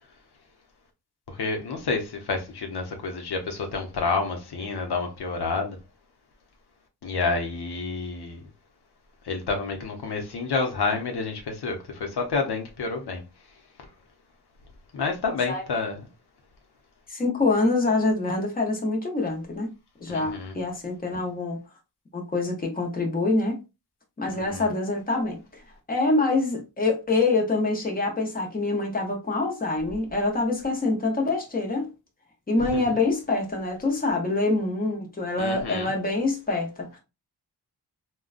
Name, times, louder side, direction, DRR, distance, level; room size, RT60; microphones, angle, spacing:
voice 1, 1.3-5.8 7.0-8.5 9.2-13.2 14.9-16.0 20.1-20.5 24.3-24.7 32.6-32.8 35.4-35.9, left 4 dB, 85° left, 0.9 m, -29 dB
voice 2, 17.1-19.7 20.0-21.6 22.1-23.6 24.2-25.6 25.9-31.9 32.5-37.0, left 3 dB, 20° left, 0.9 m, -25 dB
3.7 x 2.3 x 2.4 m
wide cardioid pair, 100°, 39 cm